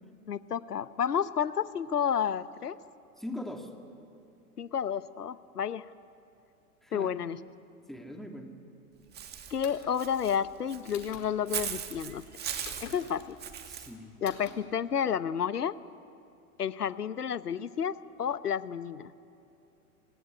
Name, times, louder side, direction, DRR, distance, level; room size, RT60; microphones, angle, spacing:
voice 1, 0.3-2.8 4.6-5.9 6.9-7.4 9.5-12.2 12.8-13.4 14.2-15.7 16.6-19.1, left 8 dB, 90° left, 16 dB, 1.0 m, -31 dB
voice 2, 3.2-3.7 6.8-7.2 7.9-8.5 13.7-14.1, left 1 dB, ahead, 3 dB, 2.4 m, -41 dB
Walk footsteps / Bird, 9.1-13.9, right 9 dB, 20° right, 2.0 m, -39 dB
sound 1, 9.6-10.0 10.9-11.3 12.6-13.0 14.2-14.5, left 9 dB, 55° left, 4.3 m, -46 dB
25.0 x 19.5 x 9.9 m, 2.8 s
hypercardioid pair, 110°, 45 cm